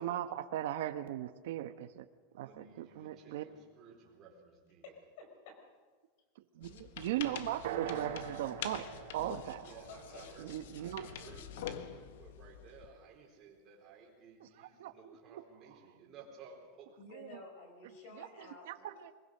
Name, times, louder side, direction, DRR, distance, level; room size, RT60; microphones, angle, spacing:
voice 1, 0.0-2.1 2.3-3.4 6.6-8.9 9.1-9.7 10.4-11.1 14.6-15.4 18.2-18.3 18.7-19.1, right 12 dB, 65° right, 9 dB, 1.1 m, -38 dB
voice 2, 2.4-4.8 9.5-10.5 10.8-17.0, right 5 dB, 25° right, -1 dB, 4.5 m, -56 dB
voice 3, 4.8-5.6 8.7-9.0 9.9-10.4 17.0-18.9, left 3 dB, 50° left, 4 dB, 4.7 m, -52 dB
sound 1, 6.6-13.0, left 9 dB, 70° left, 1.5 m, -46 dB
sound 2, 7.6-11.6, right 8 dB, 80° right, 3.7 m, -44 dB
23.5 x 22.0 x 6.7 m, 1.4 s
supercardioid pair, 180°, 0 cm